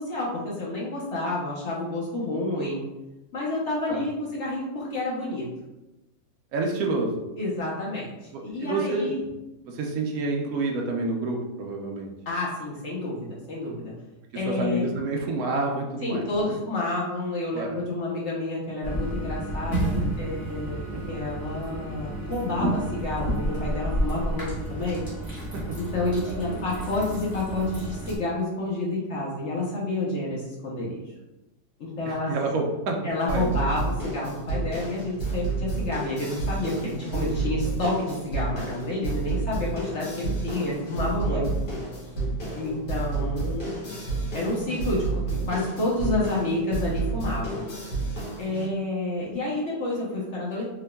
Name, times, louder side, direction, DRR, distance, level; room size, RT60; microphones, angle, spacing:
voice 1, 0.0-2.8 3.3-5.5 7.4-8.1 8.4-9.2 12.3-13.9 14.3-14.9 16.0-25.0 25.8-31.0 31.8-32.3 33.0-41.5 42.0-42.2 42.6-43.7 44.3-47.7 48.4-50.6, left 2 dB, 50° left, -4 dB, 1.0 m, -29 dB
voice 2, 6.5-7.2 8.3-9.1 9.7-12.1 14.5-16.6 17.5-17.8 20.9-21.0 25.5-25.8 26.3-26.7 32.1-33.0 33.3-33.6 41.3-41.5, right 2 dB, 65° right, 1 dB, 1.0 m, -29 dB
sound 1, 18.8-28.2, right 1 dB, 15° left, 1.3 m, -30 dB
sound 2, 33.3-48.6, right 3 dB, 80° left, 1.9 m, -30 dB
3.8 x 3.5 x 2.2 m, 0.99 s
omnidirectional pair, 1.8 m